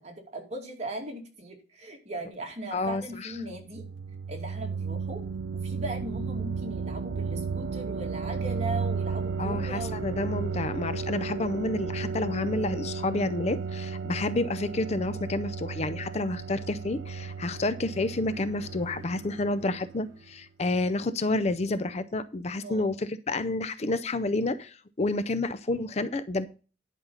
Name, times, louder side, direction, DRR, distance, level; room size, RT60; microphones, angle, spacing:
voice 1, 0.0-3.8 4.3-5.2 5.6-10.1 22.6-23.0, right 1 dB, 35° right, 2 dB, 2.5 m, -38 dB
voice 2, 2.7-3.3 9.4-26.5, left 2 dB, 35° left, 13 dB, 0.5 m, -29 dB
sound 1, 3.4-20.1, right 5 dB, 85° right, 0.5 m, -34 dB
10.5 x 5.4 x 5.6 m, 0.35 s
head